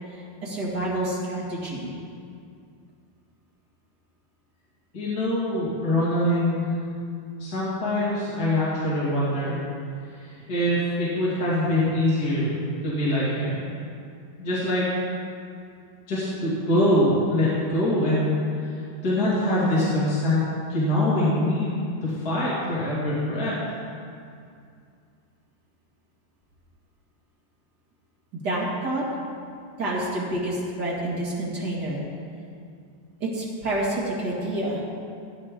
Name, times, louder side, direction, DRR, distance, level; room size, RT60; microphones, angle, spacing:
voice 1, 0.1-1.9 28.4-29.0 29.8-32.0 33.2-34.8, right 1 dB, 35° right, -6 dB, 1.9 m, -28 dB
voice 2, 4.9-6.7 7.4-9.6 10.1-13.6 14.4-14.9 16.1-23.6, left 1 dB, 30° left, -9 dB, 2.1 m, -24 dB
16.0 x 9.2 x 3.7 m, 2.4 s
omnidirectional pair, 4.3 m